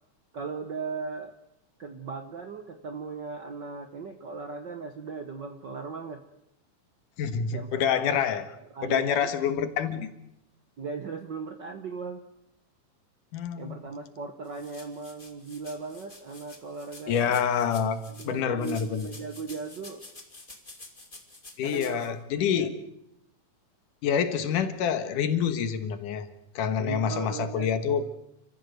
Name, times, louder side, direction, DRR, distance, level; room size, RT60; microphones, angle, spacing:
voice 1, 0.3-1.3 1.8-6.2 7.5-8.2 8.7-9.3 10.8-12.2 13.6-17.4 18.1-20.0 21.6-22.2 22.5-22.7 26.8-27.7, right 4 dB, 55° right, 7 dB, 1.2 m, -38 dB
voice 2, 7.2-8.4 8.8-10.1 13.3-13.8 17.1-18.0 18.2-19.1 21.6-22.7 24.0-26.3 26.6-28.0, left 7 dB, 90° left, 10 dB, 3.0 m, -27 dB
sound 1, 14.4-18.3 18.6-22.1, left 2 dB, 15° left, 2.6 m, -49 dB
28.5 x 15.0 x 8.0 m, 0.80 s
omnidirectional pair, 3.6 m